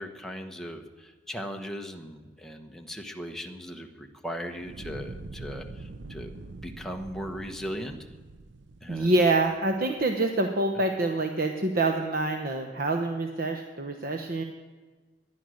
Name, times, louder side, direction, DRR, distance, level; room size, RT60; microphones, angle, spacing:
voice 1, 0.0-6.3 6.6-8.0 8.8-9.1, equal, ahead, 3 dB, 1.2 m, -38 dB
Fire, 4.6-9.7, right 2 dB, 80° right, 0.7 m, -44 dB
voice 2, 8.9-14.4, right 2 dB, 55° right, 5 dB, 1.0 m, -26 dB
18.0 x 11.0 x 6.4 m, 1.4 s
head